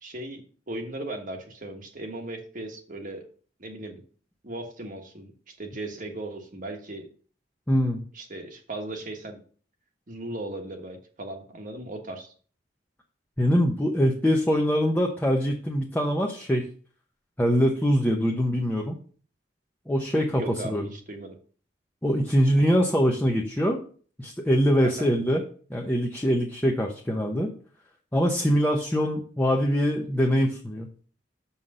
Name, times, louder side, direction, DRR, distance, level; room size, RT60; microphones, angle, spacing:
voice 1, 0.0-3.3 3.6-4.0 4.4-7.1 8.1-9.4 10.1-12.3 20.4-21.4 24.8-25.1, right 1 dB, 45° right, 4 dB, 1.3 m, -37 dB
voice 2, 7.7-8.0 13.4-16.6 17.4-19.0 19.9-20.9 22.0-23.8 24.2-25.4 25.7-27.5 28.1-30.9, equal, 10° left, 0 dB, 0.8 m, -23 dB
6.4 x 5.7 x 5.4 m, 0.43 s
head